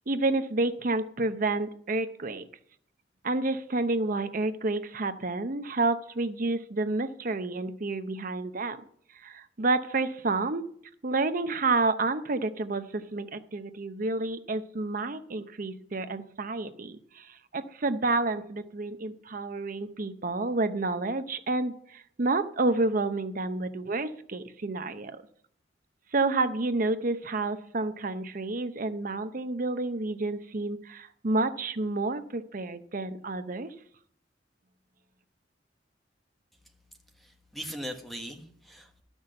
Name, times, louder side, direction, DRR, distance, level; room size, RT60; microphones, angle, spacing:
voice 1, 0.1-2.5 3.2-8.8 9.2-10.7 11.0-25.1 26.1-33.7, right 3 dB, 45° right, 10 dB, 0.8 m, -29 dB
voice 2, 37.2-39.0, equal, ahead, 3 dB, 1.3 m, -40 dB
12.0 x 6.3 x 6.6 m, 0.64 s
head